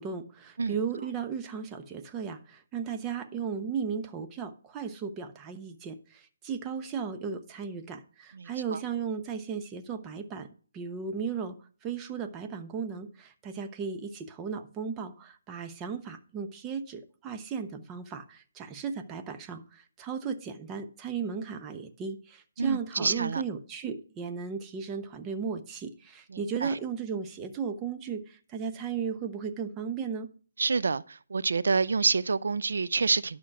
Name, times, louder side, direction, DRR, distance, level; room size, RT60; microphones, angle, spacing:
voice 1, 0.0-10.5 10.7-11.6 11.8-30.3, right 6 dB, 15° right, 1.0 m, -35 dB
voice 2, 8.3-8.8 22.6-23.4 26.3-26.8 30.6-33.4, right 4 dB, 75° right, 0.5 m, -28 dB
11.5 x 6.2 x 5.6 m
hypercardioid pair, 160°, 0 cm